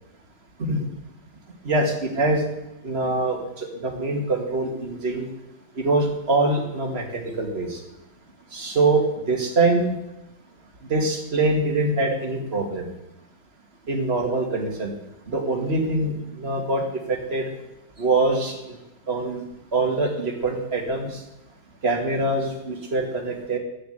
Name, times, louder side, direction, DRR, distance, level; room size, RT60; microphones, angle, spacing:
voice 1, 1.6-2.4 2.8-5.3 5.8-7.8 8.5-9.0 9.3-9.9 10.9-12.9 13.9-14.9 15.3-17.5 18.0-18.6 19.1-19.4 19.7-21.2 21.8-23.6, right 2 dB, 30° right, 2 dB, 2.3 m, -24 dB
12.0 x 8.9 x 8.1 m, 0.93 s
omnidirectional pair, 2.1 m